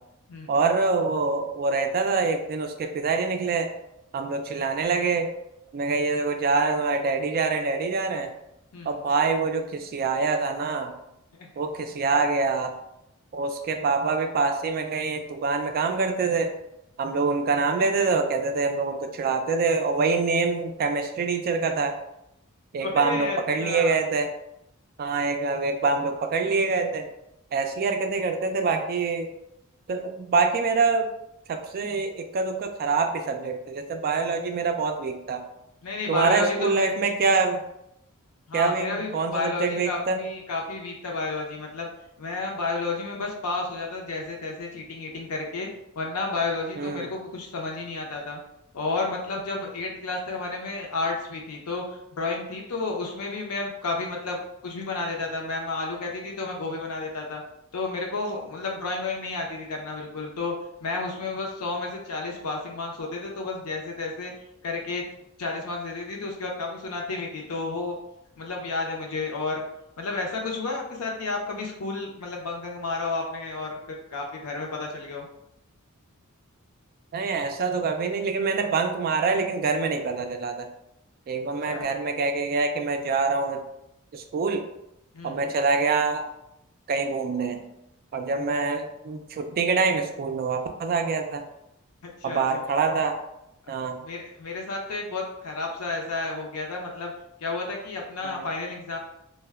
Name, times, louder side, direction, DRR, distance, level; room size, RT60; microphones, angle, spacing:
voice 1, 0.5-3.7 4.1-5.3 5.7-8.3 8.9-10.9 11.6-12.7 13.3-16.5 17.0-22.0 22.7-24.3 25.0-27.1 27.5-29.3 29.9-31.1 31.5-35.4 36.1-37.6 38.5-40.2 46.8-47.1 77.1-80.7 81.3-83.6 84.1-84.7 85.2-86.3 86.9-87.6 88.1-91.4 92.2-93.2 93.7-94.0 98.2-98.4, right 4 dB, 45° right, 5 dB, 0.3 m, -25 dB
voice 2, 22.8-24.0 35.8-36.9 38.5-41.9 42.2-45.7 46.0-48.4 48.7-57.4 57.7-60.5 60.8-64.3 64.6-65.0 65.4-68.0 68.4-69.6 70.0-75.3 81.7-81.9 85.1-85.4 92.2-92.4 94.0-97.1 97.4-99.0, left 3 dB, 90° left, 0 dB, 0.6 m, -31 dB
2.1 x 2.1 x 3.4 m, 0.83 s
head